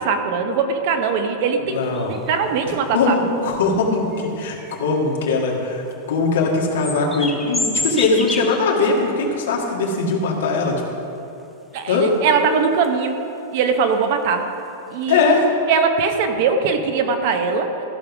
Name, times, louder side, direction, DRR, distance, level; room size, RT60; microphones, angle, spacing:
voice 1, 0.0-1.8 2.0-3.2 11.7-13.2 13.5-14.4 14.9-15.4 15.7-17.7, right 5 dB, 45° right, 6 dB, 0.9 m, -21 dB
voice 2, 1.7-2.1 2.9-10.8 11.9-12.2 15.1-15.5, left 3 dB, 80° left, -2 dB, 1.9 m, -20 dB
sound 1, 1.7-2.6 3.5-3.6 4.1-5.6 5.9-6.0 6.5-9.0 9.3-9.4 9.9-10.7 11.1-11.7 12.0-12.2 12.7-13.0 13.6-13.7 13.9-14.0 14.5-14.7 15.0-15.2, left 2 dB, 5° left, 0.6 m, -29 dB
14.5 x 5.4 x 6.0 m, 2.8 s
supercardioid pair, 170°, 0 cm